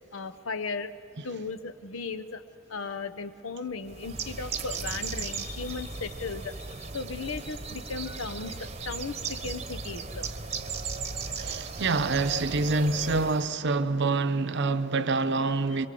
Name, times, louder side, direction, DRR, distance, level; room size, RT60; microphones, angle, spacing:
voice 1, 0.1-0.9 1.2-2.4 2.7-10.3, left 4 dB, 80° left, 1.0 m, -36 dB
Bird, 3.9-13.5, right 4 dB, 30° right, 1.0 m, -36 dB
voice 2, 11.4-15.9, right 3 dB, 60° right, 0.8 m, -26 dB
23.5 x 22.0 x 7.7 m
head